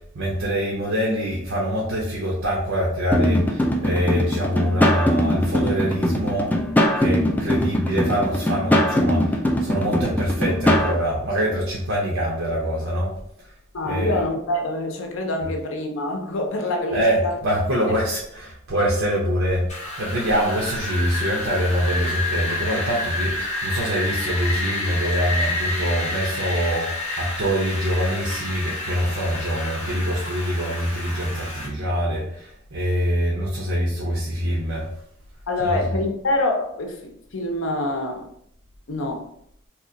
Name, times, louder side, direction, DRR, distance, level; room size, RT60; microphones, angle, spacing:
voice 1, 0.1-6.5 7.0-13.1 13.8-14.2 16.6-19.6 20.0-34.9 35.6-35.8, equal, 70° right, -5 dB, 0.8 m, -24 dB
sound 1, 3.1-10.9, left 1 dB, 10° left, 0.3 m, -21 dB
voice 2, 13.7-17.4 17.8-17.9 35.5-38.3 38.9-39.3, left 2 dB, 65° left, 3 dB, 0.7 m, -26 dB
Wind, 19.7-31.7, left 2 dB, 35° left, 1.0 m, -29 dB
3.0 x 2.4 x 3.8 m, 0.71 s
head